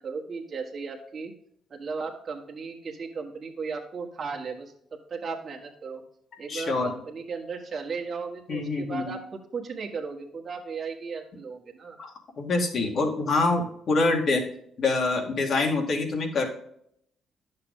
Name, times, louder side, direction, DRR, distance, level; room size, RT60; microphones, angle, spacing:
voice 1, 0.0-1.3 1.7-4.7 5.1-6.0 6.4-12.0, right 5 dB, 45° right, 0 dB, 1.5 m, -36 dB
voice 2, 6.5-6.9 8.5-9.1 12.0-12.1 12.4-14.4 14.8-16.4, left 3 dB, 60° left, 1 dB, 2.2 m, -25 dB
10.5 x 6.7 x 3.7 m, 0.70 s
cardioid pair, 90°, 0 cm